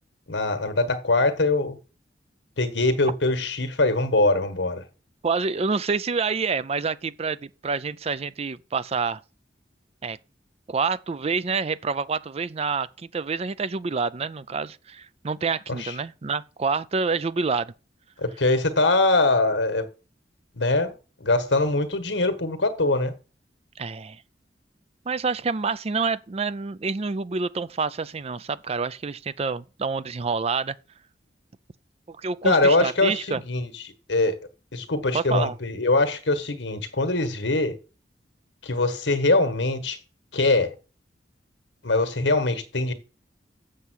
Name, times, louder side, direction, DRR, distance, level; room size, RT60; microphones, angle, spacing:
voice 1, 0.3-1.8 2.6-4.8 15.8-15.9 18.2-19.9 20.5-20.9 21.2-23.1 32.4-33.7 34.1-34.3 34.7-37.8 38.6-40.0 40.3-40.7 41.8-42.9, left 2 dB, 80° left, 1.5 m, -22 dB
voice 2, 5.2-9.2 10.0-10.2 10.7-17.7 23.8-24.2 25.1-30.8 32.1-33.4 35.1-35.6, right 4 dB, 35° right, 0.4 m, -27 dB
7.6 x 6.9 x 6.3 m
head